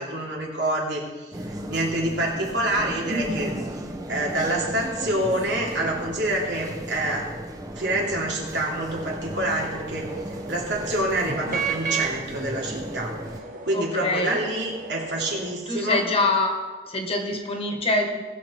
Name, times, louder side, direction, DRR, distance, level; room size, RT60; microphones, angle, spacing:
voice 1, 0.0-3.5 4.1-7.3 7.8-13.1 13.6-16.0, right 1 dB, 85° right, -2 dB, 2.8 m, -27 dB
sound 1, 1.3-13.4, right 1 dB, 20° right, 0.9 m, -35 dB
sound 2, 8.7-15.6, right 5 dB, 50° right, 1.2 m, -34 dB
voice 2, 13.7-14.4 15.7-16.5 16.9-18.2, left 2 dB, 35° left, 3 dB, 1.5 m, -24 dB
19.0 x 6.7 x 4.5 m, 1.3 s
head